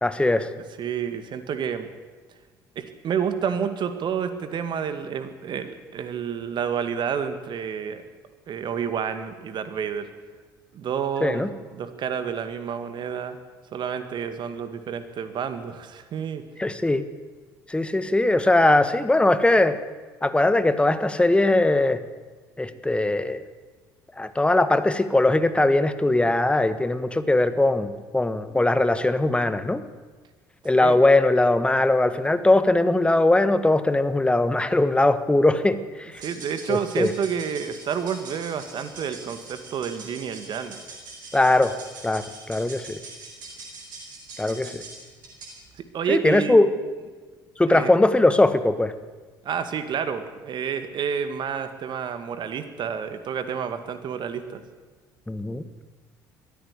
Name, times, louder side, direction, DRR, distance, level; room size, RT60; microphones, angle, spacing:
voice 1, 0.0-0.5 11.2-11.5 16.6-17.0 17.7-19.8 20.2-22.0 22.6-23.4 24.2-29.8 30.6-36.1 36.7-37.1 41.3-41.7 42.0-43.0 44.4-44.8 46.1-46.7 47.6-48.9 55.3-55.8, left 2 dB, 10° left, 12 dB, 1.6 m, -20 dB
voice 2, 0.6-1.9 2.8-8.0 8.5-10.1 10.7-11.4 11.7-13.4 13.7-16.4 30.8-31.0 36.2-40.8 45.8-46.6 47.7-48.0 49.4-54.6, right 7 dB, 50° right, 10 dB, 2.2 m, -29 dB
sound 1, 36.1-45.7, right 3 dB, 80° right, 4.2 m, -43 dB
22.0 x 14.0 x 8.4 m, 1.4 s
figure-of-eight pair, 55°, 10 cm